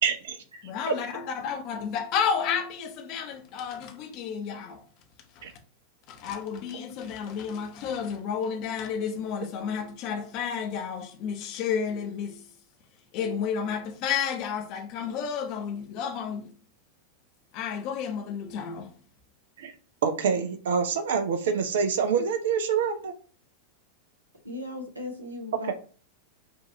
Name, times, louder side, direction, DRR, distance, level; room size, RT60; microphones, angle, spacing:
voice 1, 0.0-0.4 0.9-1.0 5.4-5.5 19.6-19.7 20.0-23.1 25.6-25.7, right 6 dB, 60° right, 0.5 m, -26 dB
voice 2, 0.6-4.8 5.4-5.5 6.1-12.4 13.1-16.5 17.5-18.9, left 7 dB, 40° left, 0.7 m, -31 dB
voice 3, 24.4-25.7, left 2 dB, 80° right, 0.9 m, -37 dB
5.2 x 2.5 x 2.7 m
figure-of-eight pair, 90°, 0 cm